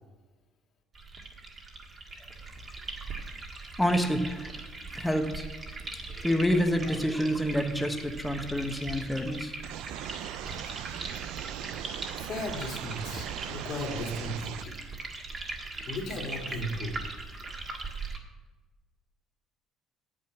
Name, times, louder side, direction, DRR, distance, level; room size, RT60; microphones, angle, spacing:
sound 1, 0.9-18.2, right 3 dB, 25° right, 1.6 m, -40 dB
voice 1, 3.8-4.5 4.9-5.4 6.1-9.5, equal, 5° left, 5 dB, 1.0 m, -28 dB
sound 2, 9.6-14.6, right 13 dB, 80° right, 0.3 m, -39 dB
voice 2, 12.2-14.8 15.7-17.1, left 1 dB, 50° left, 1 dB, 2.4 m, -36 dB
8.8 x 8.2 x 5.9 m, 1.2 s
cardioid pair, 130°, 0 cm